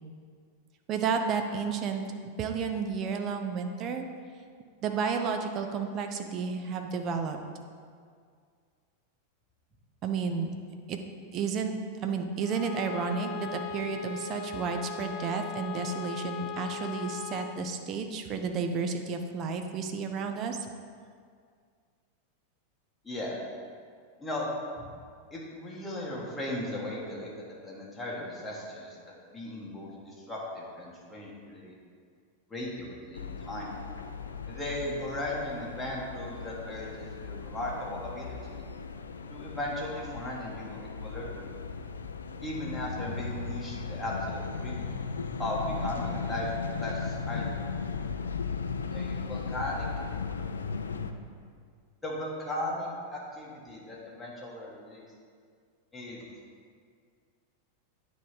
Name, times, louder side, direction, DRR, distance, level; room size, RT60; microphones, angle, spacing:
voice 1, 0.9-2.0 2.4-4.0 4.8-7.4 10.0-10.5 10.9-11.0 11.3-11.7 12.0-20.6, right 5 dB, 35° right, 5 dB, 0.6 m, -31 dB
Bowed string instrument, 12.4-17.6, left 6 dB, 40° left, 0.6 m, -39 dB
voice 2, 23.0-23.4 24.2-24.5 24.8-24.9 25.3-31.7 32.5-33.7 34.5-38.6 39.3-41.6 42.4-44.8 45.4-46.5 46.8-47.7 48.9-49.9 52.0-55.1 55.9-56.2, left 1 dB, 5° left, -5 dB, 1.5 m, -37 dB
sound 1, 33.1-51.1, left 5 dB, 70° left, 0.3 m, -37 dB
9.2 x 3.1 x 5.1 m, 2.1 s
figure-of-eight pair, 90°, 0 cm